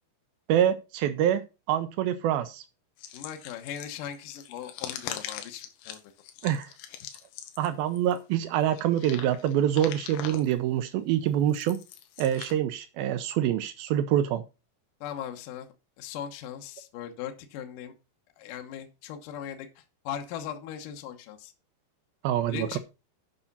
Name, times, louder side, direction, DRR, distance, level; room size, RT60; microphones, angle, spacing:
voice 1, 0.5-1.4 1.7-2.6 6.4-6.7 7.6-11.8 12.2-14.4 22.2-22.8, right 11 dB, 85° right, 10 dB, 2.1 m, -26 dB
sound 1, 3.0-8.2 8.6-10.5 11.3-12.5, left 10 dB, 90° left, 3.4 m, -42 dB
voice 2, 3.1-6.0 15.0-15.7 16.0-17.9 18.4-21.5 22.5-22.8, left 9 dB, 70° left, 4 dB, 2.1 m, -39 dB
9.8 x 5.7 x 5.4 m, 0.29 s
omnidirectional pair, 5.2 m